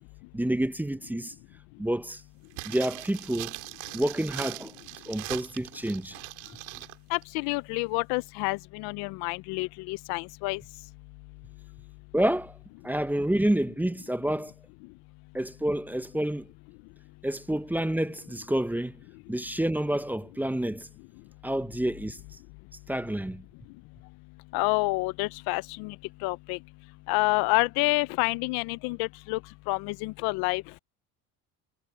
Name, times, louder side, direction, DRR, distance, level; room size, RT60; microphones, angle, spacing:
voice 1, 0.3-1.3 1.8-2.2 2.6-3.5 3.9-4.7 5.1-6.2 12.1-12.5 12.8-14.5 15.3-16.5 17.2-19.0 19.3-20.9 21.4-22.2 22.9-23.4, right 1 dB, 5° right, 0.7 m, -28 dB
sound 1, 2.5-7.0 7.2-7.3, right 26 dB, 85° right, 3.8 m, -40 dB
voice 2, 7.1-10.6 24.5-26.0 26.2-26.6 27.1-29.4 29.7-30.6, left 25 dB, 80° left, 0.6 m, -28 dB
supercardioid pair, 100°, 37 cm